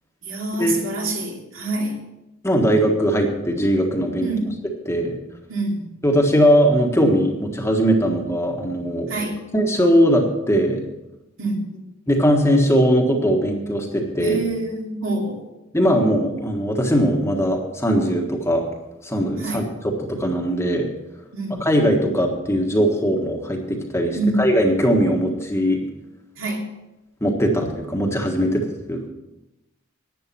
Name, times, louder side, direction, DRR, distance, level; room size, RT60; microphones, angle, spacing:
voice 1, 0.2-2.0 4.2-4.6 5.5-5.9 9.1-9.4 11.4-11.8 14.2-15.4 19.4-19.7 21.3-21.7 24.1-24.5 26.4-26.7, right 2 dB, 65° right, 0 dB, 2.6 m, -26 dB
voice 2, 2.4-4.3 4.8-5.1 6.0-9.1 9.5-10.9 12.1-14.4 15.7-18.7 19.0-20.9 21.6-25.8 27.2-29.1, equal, 15° left, 2 dB, 1.5 m, -20 dB
11.0 x 9.2 x 6.1 m, 0.94 s
head